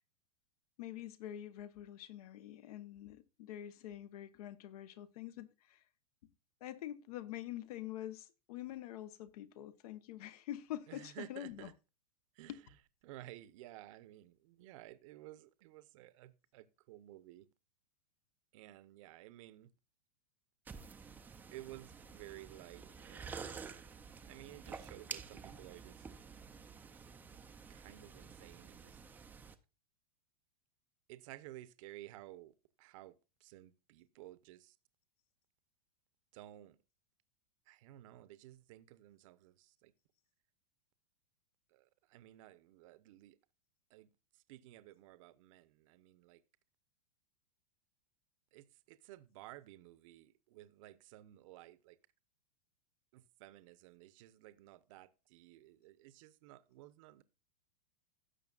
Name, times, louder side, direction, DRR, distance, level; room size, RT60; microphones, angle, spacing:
voice 1, 0.8-5.8 6.6-11.7 12.5-12.6, left 13 dB, 60° left, 1.0 m, -46 dB
voice 2, 10.9-11.7 12.3-12.8 13.0-17.5 18.5-19.7 21.5-23.7 24.2-26.1 27.7-29.0 31.1-34.8 36.3-36.8 37.7-39.9 41.7-43.4 43.9-46.4 48.5-52.0 53.1-57.2, right 15 dB, 50° right, 0.8 m, -55 dB
sound 1, 20.7-29.5, right 5 dB, 10° right, 0.5 m, -50 dB
16.5 x 6.7 x 2.4 m
supercardioid pair, 150°, 21 cm